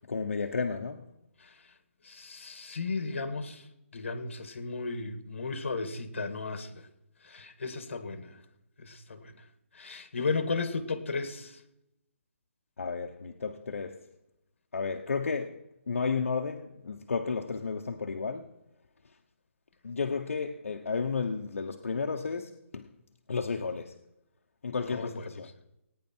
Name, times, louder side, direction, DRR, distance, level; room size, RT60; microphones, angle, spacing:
voice 1, 0.1-1.0 12.8-14.0 14.7-15.5 15.9-18.5 19.8-22.8 23.3-23.9 24.6-25.5, left 5 dB, 80° left, 1.0 m, -32 dB
voice 2, 2.0-3.7 3.9-6.9 7.2-8.4 8.8-9.3 9.7-11.6 24.9-25.3, left 4 dB, 60° left, 1.8 m, -35 dB
18.0 x 9.6 x 4.5 m
hypercardioid pair, 175°, 7 cm